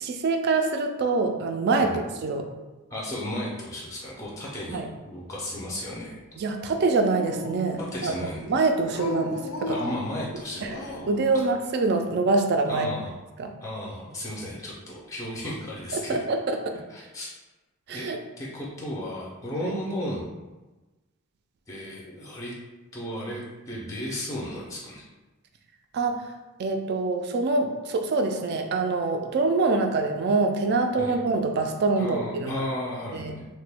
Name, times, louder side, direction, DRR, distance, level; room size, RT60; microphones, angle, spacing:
voice 1, 0.0-2.5 4.7-4.9 6.4-9.8 10.6-10.7 11.1-13.0 13.4-13.5 15.9-16.6 17.9-18.2 25.9-26.3 26.6-32.7 33.1-33.4, right 3 dB, 50° right, 5 dB, 0.3 m, -25 dB
voice 2, 2.9-6.2 7.9-8.4 9.6-11.1 12.7-13.1 13.6-16.2 16.9-17.3 17.9-18.1 18.4-20.2 21.7-22.5 22.9-25.0 31.0-31.2 32.0-33.5, left 1 dB, 15° left, -5 dB, 0.4 m, -34 dB
Dog, 6.5-8.0 8.9-11.2, left 2 dB, 80° left, 0.5 m, -36 dB
2.9 x 2.1 x 3.3 m, 1.1 s
head